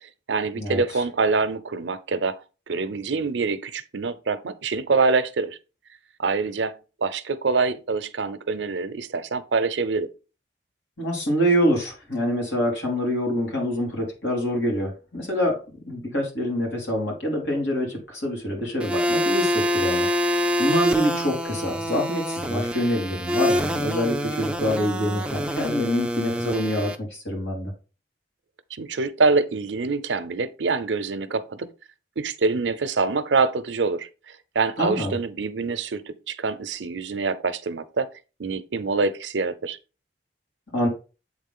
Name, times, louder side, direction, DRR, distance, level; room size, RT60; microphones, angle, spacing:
voice 1, 0.0-2.4 2.7-5.6 6.2-10.1 28.8-31.7 32.2-34.1 34.5-38.1 38.4-39.8, right 4 dB, 85° right, 0.6 m, -25 dB
voice 2, 0.6-1.0 11.0-15.6 15.8-27.7 34.8-35.2 40.7-40.9, equal, 85° left, 3.1 m, -26 dB
sound 1, 18.8-26.9, equal, 5° right, 0.5 m, -26 dB
8.1 x 3.7 x 3.8 m
head